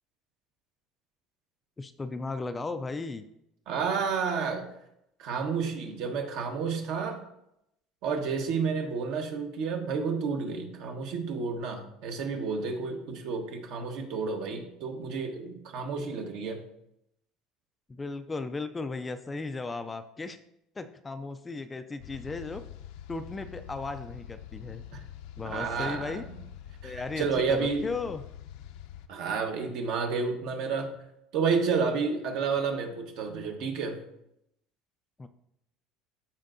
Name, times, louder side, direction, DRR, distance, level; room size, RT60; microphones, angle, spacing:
voice 1, 1.8-3.2 17.9-20.4 20.8-22.6 23.1-24.8 25.4-26.3 26.8-28.2 35.2-35.3, left 3 dB, 15° left, 10 dB, 0.3 m, -36 dB
voice 2, 3.7-4.7 5.2-7.2 8.0-16.6 24.9-25.0 25.4-26.2 26.8-27.9 29.1-30.9 31.3-34.0, right 5 dB, 60° right, 4 dB, 1.3 m, -30 dB
sound 1, 22.0-29.1, left 10 dB, 75° left, 0.6 m, -45 dB
13.0 x 4.4 x 2.6 m, 0.80 s
cardioid pair, 150°, 0 cm